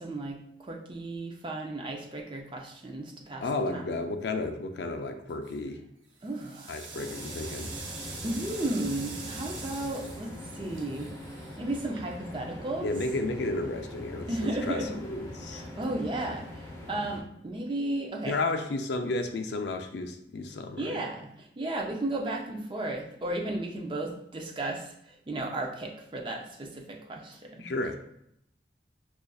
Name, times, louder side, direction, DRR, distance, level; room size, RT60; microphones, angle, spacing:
voice 1, 0.0-3.5 3.7-4.1 6.2-6.7 8.2-11.1 11.6-12.9 14.3-15.0 15.5-18.4 20.8-27.7, right 2 dB, 25° right, 1 dB, 0.4 m, -34 dB
voice 2, 3.4-5.8 6.7-7.7 12.8-15.6 18.3-21.0 27.6-28.0, left 2 dB, 65° left, 6 dB, 0.4 m, -32 dB
sound 1, 5.3-5.7 6.2-12.4, right 4 dB, 80° right, 0.7 m, -44 dB
sound 2, 6.9-17.2, left 1 dB, 15° left, 0.7 m, -43 dB
5.0 x 2.4 x 2.3 m, 0.74 s
head